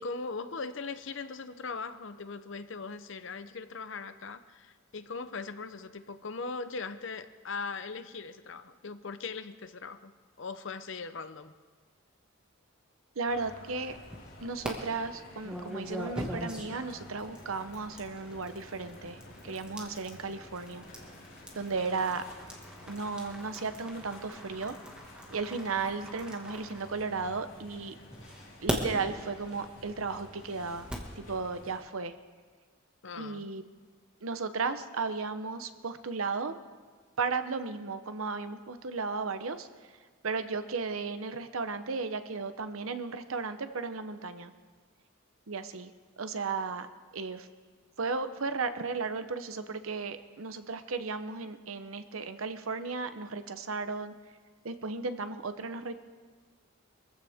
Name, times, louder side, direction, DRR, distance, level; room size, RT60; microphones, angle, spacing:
voice 1, 0.0-10.1 10.4-11.5 33.0-33.5, left 4 dB, 60° left, 11 dB, 0.7 m, -39 dB
voice 2, 13.2-14.0 14.4-19.2 19.4-20.8 21.5-22.2 22.9-24.7 25.3-27.9 28.6-30.9 31.2-32.1 33.2-33.6 34.2-36.5 37.2-39.7 40.2-44.5 45.5-45.9 46.2-46.9 47.1-47.5 48.0-54.1 54.6-56.0, right 4 dB, 85° right, 10 dB, 0.9 m, -35 dB
sound 1, 13.3-31.8, left 1 dB, 80° left, 5.2 m, -51 dB
sound 2, 13.8-14.7 15.4-27.5 28.1-31.2, equal, 5° right, 1.7 m, -41 dB
23.0 x 15.0 x 3.6 m, 1.5 s
head